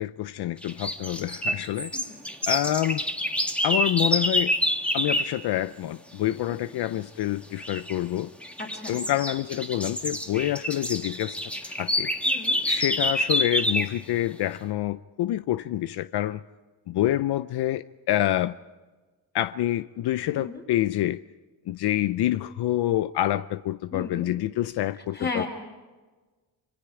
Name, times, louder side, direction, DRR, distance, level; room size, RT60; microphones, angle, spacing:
voice 1, 0.0-1.9 2.5-3.0 3.6-4.5 4.9-8.3 8.9-11.4 11.6-12.1 12.7-16.4 16.9-18.6 19.3-21.2 21.7-25.4, left 14 dB, 80° left, 0.6 m, -27 dB
sound 1, 0.6-5.4 7.6-7.9 8.4-14.0, equal, 5° left, 1.7 m, -27 dB
voice 2, 8.6-9.0 12.3-12.6 20.3-20.6 23.9-24.3 25.1-25.5, left 3 dB, 25° left, 5.2 m, -35 dB
27.0 x 24.0 x 4.8 m
cardioid pair, 125°, 39 cm